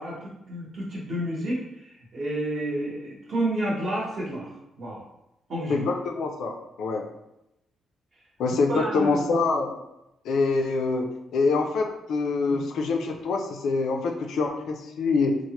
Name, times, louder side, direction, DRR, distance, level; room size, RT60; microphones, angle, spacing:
voice 1, 0.0-4.5 4.8-5.0 5.5-5.9 8.7-9.4 12.5-12.6, right 1 dB, 45° right, -5 dB, 0.8 m, -30 dB
voice 2, 5.7-7.1 8.4-9.8 10.2-15.4, left 4 dB, 70° left, 3 dB, 0.4 m, -25 dB
3.1 x 2.0 x 2.8 m, 0.87 s
cardioid pair, 140°, 0 cm